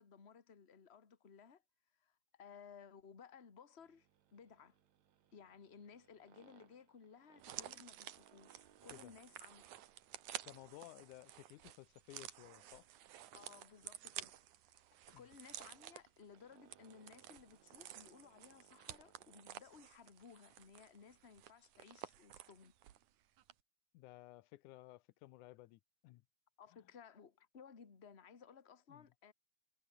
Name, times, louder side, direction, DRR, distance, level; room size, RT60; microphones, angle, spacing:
voice 1, 0.0-1.6 2.0-4.8 5.3-9.7 13.3-14.4 14.7-14.8 15.1-22.7 26.6-29.3, left 6 dB, 25° left, 1.7 m, -59 dB
sound 1, 3.8-19.5, right 10 dB, 70° right, 2.8 m, -70 dB
sound 2, 7.4-23.1 23.4-23.5, right 12 dB, 85° right, 2.8 m, -53 dB
voice 2, 10.4-12.9 15.1-15.3 23.9-26.2 26.7-26.8 28.9-29.1, left 17 dB, 85° left, 2.2 m, -57 dB
omnidirectional pair, 3.4 m